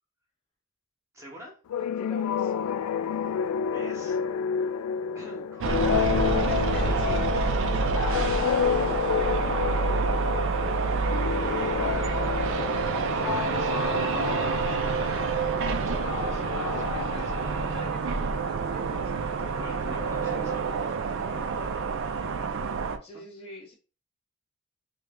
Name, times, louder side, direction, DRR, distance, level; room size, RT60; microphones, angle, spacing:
voice 1, 1.1-1.6 3.1-3.4 3.7-4.2 4.6-4.7 5.1-6.2 6.8-8.0 11.4-15.3 15.8-17.5 19.6-23.2, equal, 15° right, -1 dB, 0.9 m, -46 dB
sound 1, 1.7-18.1, left 8 dB, 80° left, 0.3 m, -30 dB
voice 2, 1.8-2.7 6.5-7.3 7.7-9.4 12.8-13.2 15.5-16.2 16.7-20.6 23.0-23.7, equal, 25° left, 0 dB, 0.9 m, -44 dB
sound 2, 5.6-23.0, right 5 dB, 60° right, 0.4 m, -28 dB
3.1 x 2.8 x 3.5 m, 0.34 s
head